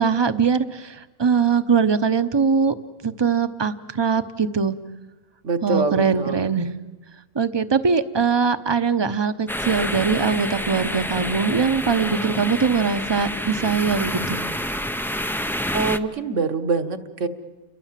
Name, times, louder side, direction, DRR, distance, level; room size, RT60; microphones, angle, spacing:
voice 1, 0.0-2.7 3.0-4.7 5.6-6.7 7.3-14.4, right 5 dB, 25° right, 12 dB, 0.8 m, -21 dB
voice 2, 5.4-6.5 15.7-17.3, right 4 dB, 60° right, 8 dB, 1.6 m, -24 dB
sound 1, 9.5-16.0, equal, 5° left, 0.4 m, -28 dB
29.0 x 22.5 x 7.5 m, 1.1 s
omnidirectional pair, 1.5 m